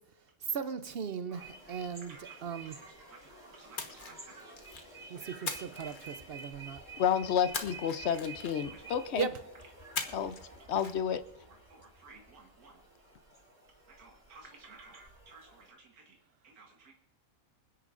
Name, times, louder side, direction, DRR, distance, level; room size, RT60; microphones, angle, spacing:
voice 1, 0.5-1.4 1.7-2.1 2.4-2.7 5.1-6.8 9.2-9.3, right 6 dB, 60° right, 12 dB, 0.6 m, -37 dB
sound 1, 1.3-15.7, right 3 dB, 30° right, 3.3 m, -51 dB
voice 2, 2.0-4.3 5.2-5.3 8.6-9.0 9.5-9.6 10.5-11.2 11.4-12.7 13.9-16.2 16.4-16.9, right 4 dB, 90° right, 1 dB, 1.8 m, -56 dB
Splash splatter, 3.8-4.9 5.5-6.6 7.5-8.8 10.0-10.4 10.7-10.9, left 4 dB, 40° left, 1.2 m, -40 dB
voice 3, 7.0-9.3 10.1-10.3 10.7-11.2, left 8 dB, 60° left, 12 dB, 0.8 m, -30 dB
27.0 x 9.9 x 2.5 m, 0.89 s
omnidirectional pair, 1.5 m